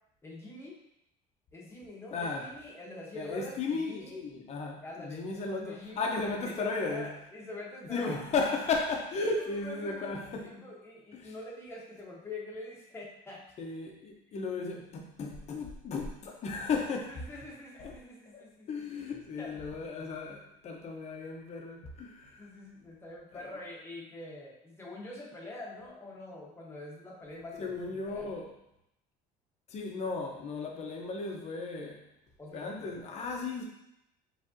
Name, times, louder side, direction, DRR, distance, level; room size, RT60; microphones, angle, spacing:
voice 1, 0.2-0.8 1.5-4.1 4.8-5.2 5.5-8.3 9.6-10.1 10.4-13.4 17.1-19.0 19.4-19.8 20.2-20.4 21.8-21.9 22.4-28.4 32.4-33.0, left 2 dB, 15° left, -4 dB, 1.1 m, -45 dB
voice 2, 2.1-2.5 3.1-7.1 7.8-10.5 11.1-11.3 13.6-17.2 17.8-17.9 18.3-22.5 23.3-23.5 27.6-28.5 29.7-32.0 32.5-33.6, left 4 dB, 40° left, 1 dB, 0.9 m, -35 dB
5.1 x 3.4 x 2.7 m, 0.82 s
cardioid pair, 125°, 16 cm